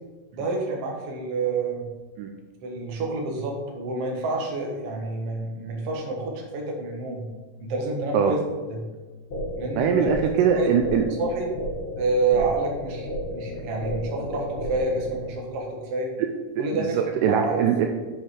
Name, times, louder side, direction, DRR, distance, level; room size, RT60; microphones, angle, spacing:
voice 1, 0.3-1.9 2.6-7.3 7.6-8.4 8.7-8.9 9.6-10.7 11.2-11.5 11.9-16.1 16.6-17.6, right 3 dB, 55° right, 0 dB, 2.0 m, -28 dB
sound 1, 9.3-15.3, equal, 60° left, 0.5 m, -33 dB
voice 2, 9.8-11.0 16.6-17.9, right 7 dB, 80° right, 4 dB, 2.1 m, -22 dB
7.8 x 5.2 x 4.9 m, 1.3 s
omnidirectional pair, 4.0 m